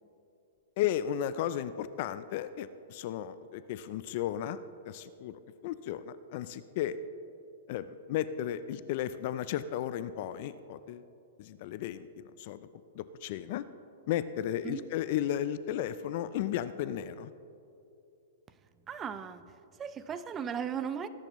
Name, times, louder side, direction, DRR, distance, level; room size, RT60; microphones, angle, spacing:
voice 1, 0.8-7.0 7.7-11.1 11.4-12.6 13.0-13.6 14.1-17.3, left 11 dB, 50° left, 14 dB, 0.4 m, -34 dB
voice 2, 18.9-21.1, right 7 dB, 20° right, 12 dB, 0.5 m, -37 dB
19.0 x 10.5 x 3.1 m, 2.6 s
hypercardioid pair, 145°, 0 cm